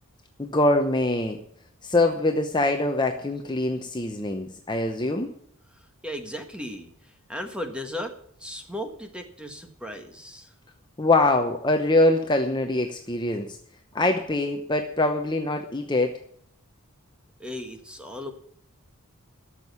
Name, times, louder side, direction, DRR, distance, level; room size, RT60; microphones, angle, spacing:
voice 1, 0.4-1.4 1.8-5.3 11.0-13.6 13.9-16.2, left 2 dB, 20° left, 4 dB, 0.8 m, -23 dB
voice 2, 5.7-10.5 17.4-18.3, left 1 dB, 5° right, 5 dB, 1.4 m, -36 dB
12.5 x 7.4 x 9.6 m, 0.64 s
head